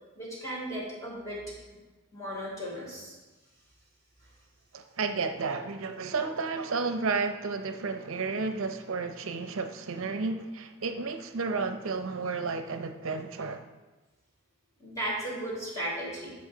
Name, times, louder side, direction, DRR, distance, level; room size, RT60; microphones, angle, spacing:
voice 1, 0.1-1.4 2.1-3.2 14.8-16.3, right 1 dB, 15° left, -5 dB, 3.5 m, -35 dB
voice 2, 4.7-13.6, right 4 dB, 75° right, 7 dB, 0.6 m, -32 dB
14.5 x 5.6 x 3.8 m, 1.2 s
head